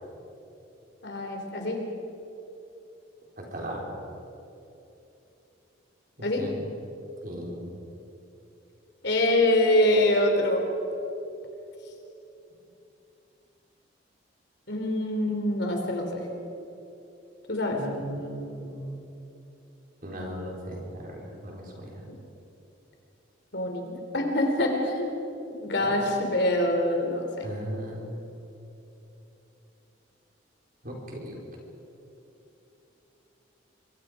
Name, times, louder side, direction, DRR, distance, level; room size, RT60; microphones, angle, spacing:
voice 1, 1.0-1.8 6.2-6.4 9.0-10.6 14.7-16.3 17.5-17.8 23.5-25.2 25.5-27.5, left 1 dB, 60° left, 2 dB, 3.6 m, -25 dB
voice 2, 3.4-3.8 6.4-6.6 7.2-7.6 17.7-18.9 20.0-22.1 25.8-25.9 27.4-28.2 30.8-31.4, equal, 45° right, -1 dB, 4.5 m, -37 dB
24.5 x 24.5 x 5.1 m, 2.9 s
head